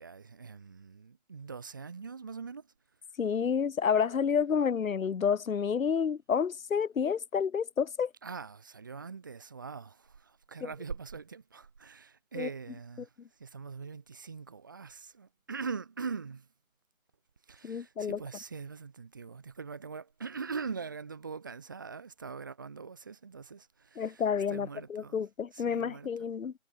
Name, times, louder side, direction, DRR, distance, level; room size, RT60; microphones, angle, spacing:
voice 1, 0.0-2.7 8.2-13.1 13.4-16.5 17.5-24.2 24.5-25.2 25.5-26.3, right 5 dB, 15° right, 1.2 m, -42 dB
voice 2, 3.2-8.1 10.6-10.7 12.4-12.5 17.6-18.2 24.0-26.5, left 7 dB, 70° left, 0.7 m, -29 dB
figure-of-eight pair, 155°, 41 cm